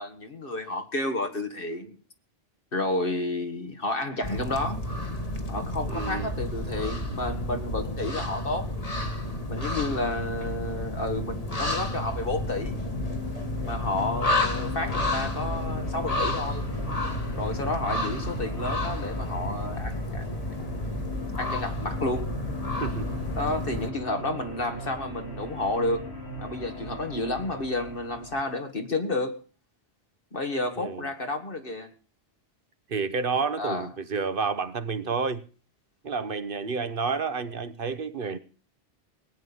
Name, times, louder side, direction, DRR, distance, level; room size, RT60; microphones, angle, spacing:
voice 1, 0.0-2.0 2.7-4.8 5.5-8.7 9.5-12.8 13.6-16.7 17.4-22.3 23.4-26.0 26.4-29.4 30.3-31.9 33.6-33.9, left 2 dB, 60° left, 2.1 m, -31 dB
sound 1, 4.2-23.9, left 1 dB, 35° left, 1.8 m, -31 dB
voice 2, 5.9-6.3 22.8-23.1 30.8-31.1 32.9-35.4 36.0-38.4, right 5 dB, 60° right, 1.1 m, -30 dB
sound 2, 11.4-28.4, left 1 dB, 85° left, 3.6 m, -40 dB
19.0 x 9.1 x 7.0 m
omnidirectional pair, 1.1 m